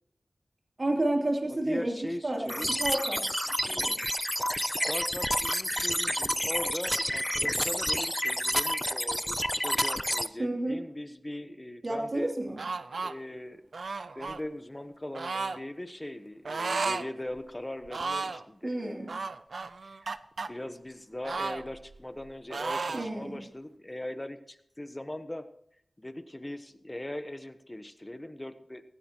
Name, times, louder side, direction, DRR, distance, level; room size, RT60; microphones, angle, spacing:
voice 1, 0.8-1.9 2.2-3.2 3.5-4.0 10.4-10.8 11.8-12.6 18.6-19.1 22.9-23.4, right 1 dB, 50° right, 0 dB, 3.1 m, -30 dB
voice 2, 1.5-2.7 4.6-12.3 13.0-13.6 14.1-19.1 19.8-20.0 20.4-25.4 26.0-28.8, left 1 dB, 20° left, 10 dB, 1.1 m, -40 dB
sound 1, 2.5-10.3, equal, 5° left, 0.6 m, -29 dB
sound 2, 12.6-13.1 13.7-14.4 15.1-15.6 16.4-17.1 17.4-17.5 17.9-18.4 19.1-20.5 21.2-22.2 22.5-23.1, right 4 dB, 75° right, 0.5 m, -33 dB
16.5 x 16.0 x 3.0 m, 0.70 s
wide cardioid pair, 55°, 0 cm